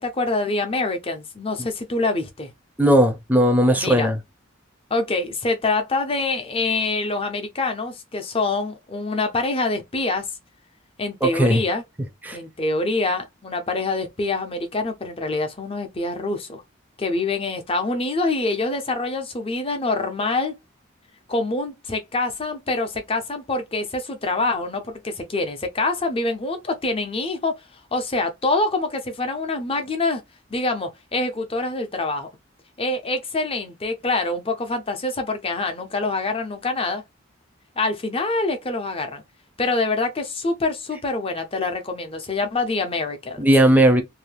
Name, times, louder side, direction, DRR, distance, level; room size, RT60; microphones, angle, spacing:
voice 1, 0.0-2.5 3.8-4.1 4.9-10.3 11.0-11.8 12.3-16.6 17.0-20.5 21.3-27.6 27.9-30.2 30.5-32.3 32.8-37.0 37.8-39.2 39.6-43.5, left 3 dB, 30° left, 0.7 m, -25 dB
voice 2, 2.8-4.2 11.2-11.6 12.2-12.4 43.4-44.0, right 1 dB, 10° right, 0.6 m, -17 dB
2.7 x 2.1 x 3.2 m
head